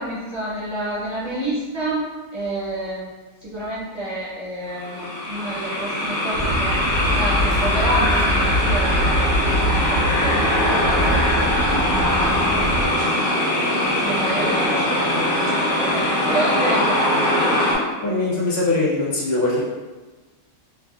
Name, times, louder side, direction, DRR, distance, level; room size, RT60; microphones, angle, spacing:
voice 1, 0.0-2.0 2.3-3.1 3.4-6.9 7.1-13.5 13.8-17.4, right 1 dB, 35° right, -8 dB, 1.0 m, -29 dB
sound 1, 4.7-17.8, left 1 dB, 10° left, 0.7 m, -21 dB
sound 2, 6.3-12.9, equal, 60° right, 0.9 m, -24 dB
voice 2, 18.0-19.6, left 2 dB, 80° left, -6 dB, 1.1 m, -21 dB
2.6 x 2.5 x 2.3 m, 1.3 s
omnidirectional pair, 1.2 m